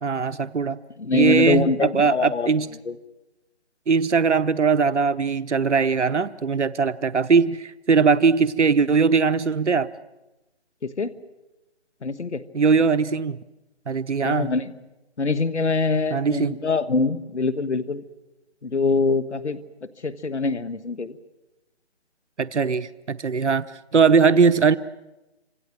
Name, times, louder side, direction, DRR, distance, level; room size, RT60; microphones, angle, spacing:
voice 1, 0.0-0.8 1.1-2.7 3.9-9.9 12.5-13.4 13.9-14.5 16.1-16.5 22.4-23.7 23.9-24.8, right 5 dB, 90° right, 12 dB, 1.0 m, -20 dB
voice 2, 1.0-2.5 2.9-3.0 10.8-11.1 12.0-12.4 14.2-14.7 15.2-18.0 18.6-19.6 20.0-21.1, left 3 dB, 85° left, 14 dB, 1.5 m, -24 dB
28.0 x 26.0 x 7.5 m, 1.0 s
figure-of-eight pair, 165°, 34 cm